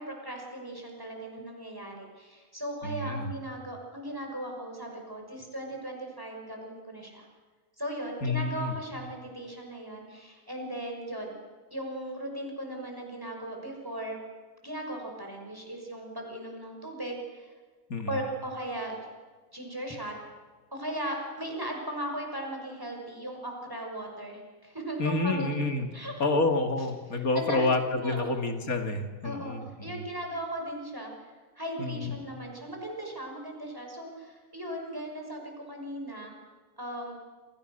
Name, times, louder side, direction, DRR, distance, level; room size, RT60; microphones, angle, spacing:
voice 1, 0.0-7.3 7.8-11.3 11.7-14.2 14.6-17.5 18.1-19.1 19.5-20.2 20.7-25.5 25.9-26.3 27.1-27.7 28.0-28.3 29.2-29.6 29.8-31.1 31.6-36.3 36.8-37.1, right 1 dB, 15° right, 1 dB, 6.1 m, -37 dB
voice 2, 2.8-3.3 8.2-8.7 17.9-18.2 25.0-25.9 26.2-30.0 31.8-32.1, left 2 dB, 80° left, 5 dB, 2.7 m, -29 dB
28.5 x 27.5 x 6.7 m, 1.4 s
omnidirectional pair, 1.5 m